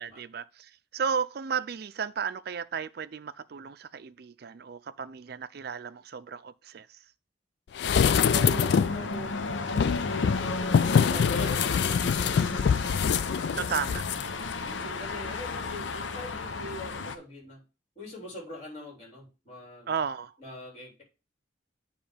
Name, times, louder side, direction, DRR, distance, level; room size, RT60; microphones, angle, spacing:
voice 1, 0.0-7.1 13.6-14.0 19.9-20.3, right 6 dB, 55° right, 0.4 m, -34 dB
sound 1, 7.8-17.2, left 4 dB, 90° left, 0.7 m, -33 dB
sound 2, 7.8-9.0 9.7-14.2 14.5-14.6, left 7 dB, 60° left, 0.3 m, -25 dB
voice 2, 8.2-12.7 13.4-13.8 14.3-17.6 17.9-19.9 20.4-21.0, left 1 dB, 35° left, 3.4 m, -43 dB
9.0 x 3.1 x 5.0 m
head